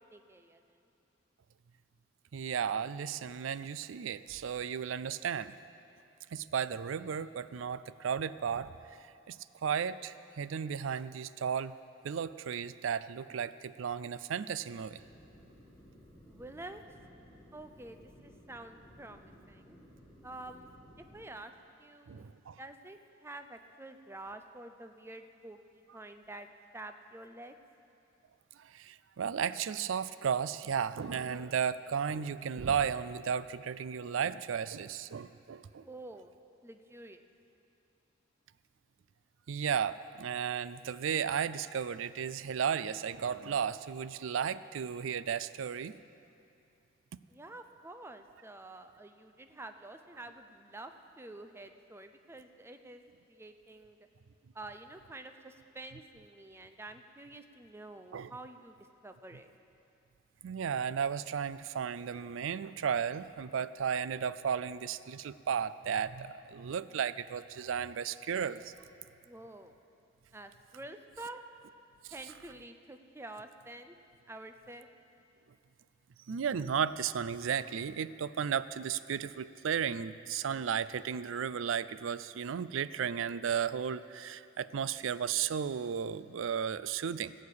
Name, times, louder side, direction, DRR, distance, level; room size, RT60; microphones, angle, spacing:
voice 1, 0.1-0.8 16.3-16.8 17.5-19.8 20.2-20.8 21.1-21.5 21.8-26.5 26.7-27.5 35.8-36.3 36.6-37.2 47.3-53.0 53.3-54.0 54.5-58.8 59.0-59.5 69.2-69.7 70.3-71.4 72.1-74.0 74.3-74.9, right 2 dB, 15° right, 8 dB, 0.6 m, -48 dB
voice 2, 2.3-5.5 6.3-8.7 9.3-11.8 12.0-15.0 22.1-22.6 28.6-35.9 39.5-46.0 58.1-58.3 60.4-68.7 72.0-72.1 76.3-87.3, right 7 dB, 80° right, 15 dB, 0.4 m, -34 dB
sound 1, 14.8-21.2, equal, 5° left, 3.5 m, -57 dB
17.5 x 6.6 x 8.5 m, 2.6 s
head